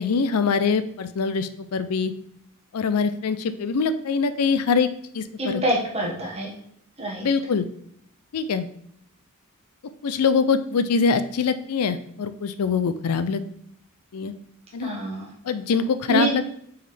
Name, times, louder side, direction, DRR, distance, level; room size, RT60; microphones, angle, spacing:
voice 1, 0.0-2.1 2.7-4.9 5.1-5.6 7.2-7.6 8.3-8.7 10.0-13.4 14.1-14.3 14.7-14.9 15.4-16.5, left 5 dB, 85° left, 12 dB, 0.5 m, -23 dB
voice 2, 5.4-6.5 7.0-7.3 14.8-15.3 16.1-16.3, right 2 dB, 30° right, -2 dB, 1.5 m, -26 dB
6.2 x 4.8 x 3.3 m, 0.69 s
head